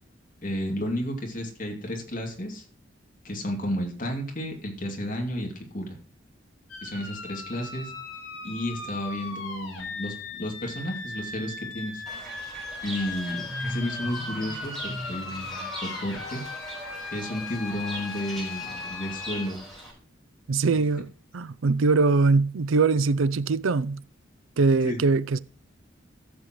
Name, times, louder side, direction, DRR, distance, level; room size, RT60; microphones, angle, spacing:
voice 1, 0.4-2.6 3.2-5.9 6.8-7.9 8.4-12.0 12.8-16.4 17.1-19.6 24.8-25.0, equal, 45° left, 2.6 m, -32 dB
sound 1, 6.7-19.5, left 4 dB, 85° left, 3.7 m, -38 dB
Fowl / Bird, 12.1-19.9, equal, ahead, 4.8 m, -39 dB
voice 2, 20.5-24.0 24.6-25.4, right 4 dB, 85° right, 0.5 m, -22 dB
15.0 x 6.8 x 3.0 m
head